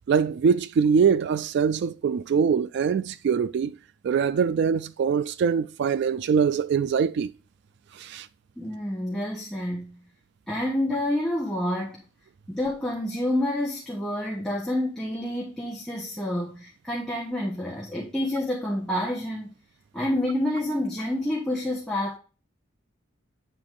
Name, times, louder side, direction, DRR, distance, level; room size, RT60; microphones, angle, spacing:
voice 1, 0.1-3.8 4.0-7.3 8.0-8.3, right 6 dB, 60° right, 0.3 m, -23 dB
voice 2, 8.6-10.1 10.5-12.0 12.5-19.5 19.9-22.2, left 1 dB, 5° left, 1.2 m, -28 dB
7.9 x 3.9 x 3.7 m
head